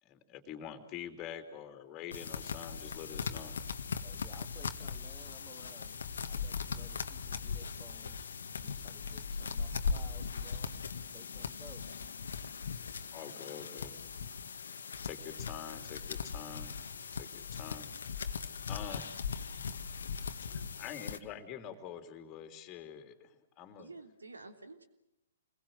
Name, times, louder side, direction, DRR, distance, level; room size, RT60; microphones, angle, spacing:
voice 1, 0.0-3.7 13.1-14.0 15.0-16.8 17.1-17.9 18.7-19.1 20.5-23.9, left 9 dB, 25° left, 7 dB, 3.3 m, -46 dB
sound 1, 2.1-21.2, left 5 dB, 65° left, 1.9 m, -39 dB
voice 2, 3.9-8.3 8.6-10.7 11.1-12.0, right 3 dB, 10° right, 7 dB, 3.2 m, -57 dB
voice 3, 20.5-20.8 23.8-24.8, right 3 dB, 80° right, 7 dB, 3.2 m, -51 dB
28.5 x 22.0 x 7.8 m, 0.90 s
figure-of-eight pair, 120°, 0 cm